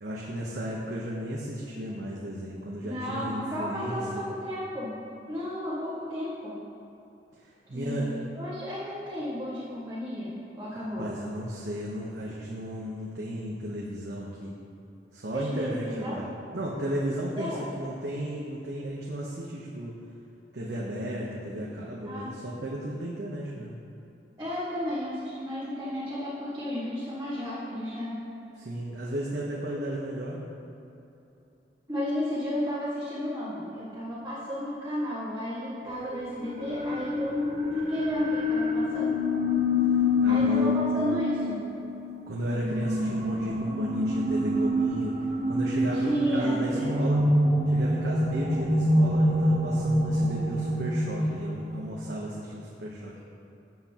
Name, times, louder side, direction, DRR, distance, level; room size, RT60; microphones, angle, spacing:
voice 1, 0.0-4.3 7.7-8.2 10.7-14.5 15.1-19.9 20.5-23.8 28.6-30.5 40.2-40.8 42.3-47.3 47.7-53.2, equal, 70° right, -4 dB, 1.0 m, -34 dB
voice 2, 2.8-4.9 5.3-6.5 7.7-8.1 8.3-11.1 15.3-16.2 17.3-17.6 22.0-22.3 24.4-28.2 31.9-39.1 40.3-41.6 45.9-46.9, equal, 20° right, -11 dB, 1.7 m, -33 dB
sound 1, 35.9-52.1, left 1 dB, 40° right, 1.0 m, -26 dB
13.0 x 7.6 x 2.9 m, 2.8 s
head